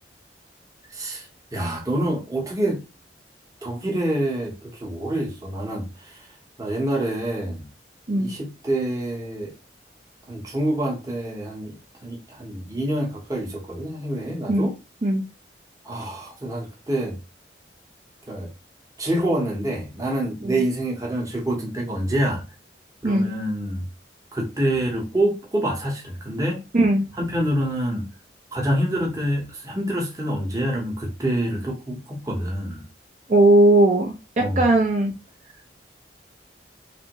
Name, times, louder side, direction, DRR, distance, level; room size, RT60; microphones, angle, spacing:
voice 1, 0.9-1.3 1.5-2.8 3.6-6.3 6.6-7.7 8.1-9.5 10.3-14.7 15.8-17.2 18.3-18.5 19.0-22.4 23.0-23.8 24.3-26.6 27.2-28.0 28.5-32.8 34.4-34.6, right 1 dB, 20° right, 0.9 m, -26 dB
voice 2, 26.7-27.0 33.3-35.1, right 2 dB, 40° right, 0.6 m, -18 dB
3.4 x 2.6 x 2.9 m
head